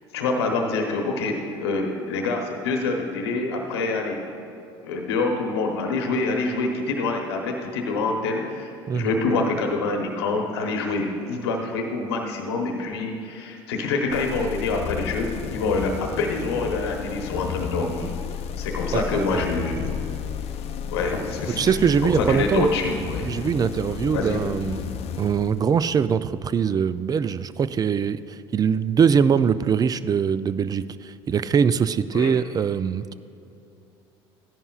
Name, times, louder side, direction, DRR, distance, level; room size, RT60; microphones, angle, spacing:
voice 1, 0.1-4.2 4.8-18.1 18.6-19.8 20.9-21.7 22.0-23.3 24.1-24.4 32.1-32.3, left 3 dB, 85° left, 2 dB, 1.0 m, -26 dB
sound 1, 14.1-26.0, left 8 dB, 50° left, 0.6 m, -33 dB
voice 2, 18.9-19.4 21.6-22.7 23.2-24.8 25.2-33.1, right 7 dB, 30° right, 15 dB, 0.4 m, -22 dB
14.5 x 11.0 x 2.4 m, 2.8 s
hypercardioid pair, 75°, 13 cm